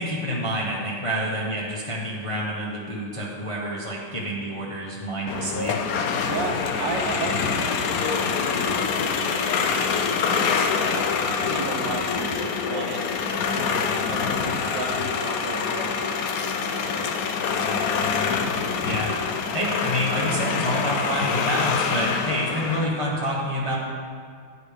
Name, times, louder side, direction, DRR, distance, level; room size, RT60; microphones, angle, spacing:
voice 1, 0.0-5.8 18.8-19.1 19.5-23.8, equal, 25° left, -4 dB, 0.7 m, -28 dB
sound 1, 5.3-22.8, left 6 dB, 75° left, 0.8 m, -25 dB
voice 2, 6.2-11.1 11.4-13.0 13.5-15.9 16.6-16.9 17.4-17.6, right 4 dB, 70° right, 3 dB, 1.4 m, -35 dB
9.4 x 9.2 x 3.4 m, 2.1 s
omnidirectional pair, 2.1 m